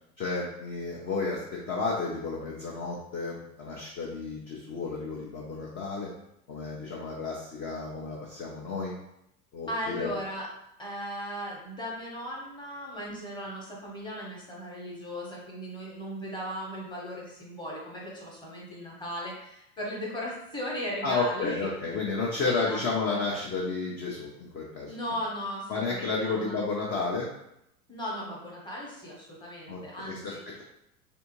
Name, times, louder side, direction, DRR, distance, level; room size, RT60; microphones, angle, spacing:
voice 1, 0.2-6.1 6.5-8.9 9.5-10.1 21.0-24.9 25.7-27.3 29.7-29.8 30.1-30.6, left 4 dB, 25° left, -4 dB, 0.6 m, -32 dB
voice 2, 9.7-10.5 10.8-21.7 22.4-22.8 23.1-23.3 24.9-26.6 27.9-30.4, equal, 10° left, -4 dB, 1.0 m, -37 dB
3.4 x 2.6 x 2.9 m, 0.80 s
figure-of-eight pair, 90°, 47 cm